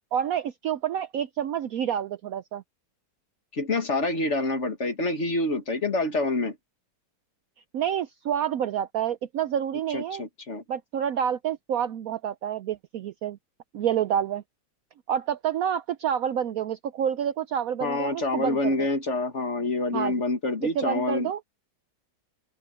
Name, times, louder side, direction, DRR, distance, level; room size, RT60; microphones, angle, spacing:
voice 1, 0.1-2.6 7.7-10.2 10.7-13.4 13.7-14.4 15.1-18.9 19.9-20.1 20.8-21.4, right 9 dB, 70° right, 0.9 m, -28 dB
voice 2, 3.5-6.6 9.9-10.6 17.8-21.3, left 2 dB, 40° left, 2.0 m, -27 dB
open air
omnidirectional pair, 1.9 m